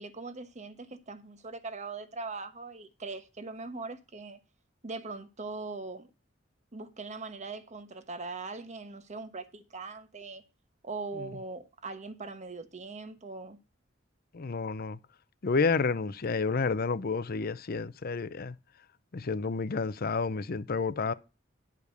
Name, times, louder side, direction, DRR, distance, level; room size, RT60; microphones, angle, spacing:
voice 1, 0.0-4.4 4.8-6.1 6.7-10.4 10.8-13.6, right 3 dB, 40° right, 1.1 m, -41 dB
voice 2, 14.3-15.0 15.4-18.5 19.1-21.1, left 4 dB, 50° left, 0.6 m, -30 dB
10.5 x 4.9 x 6.7 m
head